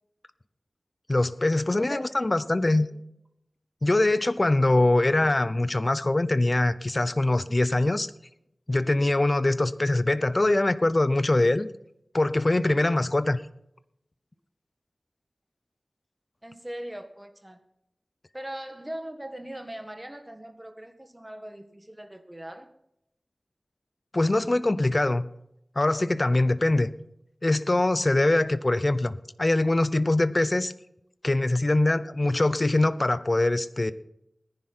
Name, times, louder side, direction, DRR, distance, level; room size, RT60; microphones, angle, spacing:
voice 1, 1.1-2.9 3.8-8.1 8.7-11.7 12.1-13.4 24.1-25.3 25.8-26.9 27.4-30.7 31.2-33.9, left 2 dB, 40° left, 14 dB, 0.7 m, -23 dB
voice 2, 1.8-3.0 16.4-17.6 18.3-22.7, right 1 dB, 20° right, 7 dB, 1.8 m, -40 dB
18.5 x 10.5 x 4.4 m, 0.79 s
wide cardioid pair, 60°, 0 cm